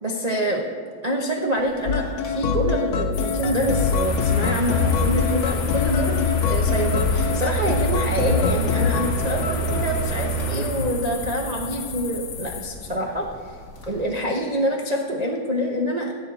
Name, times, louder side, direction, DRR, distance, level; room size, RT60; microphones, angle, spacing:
voice 1, 0.0-0.6 1.0-13.6 13.9-16.1, equal, 50° right, -1 dB, 0.4 m, -26 dB
sound 1, 1.6-14.1, equal, 35° left, 1.9 m, -28 dB
sound 2, 1.9-9.8, left 7 dB, 85° left, 1.6 m, -25 dB
sound 3, 3.1-12.7, left 8 dB, 65° left, 1.4 m, -36 dB
15.0 x 7.8 x 4.1 m, 2.1 s
omnidirectional pair, 2.3 m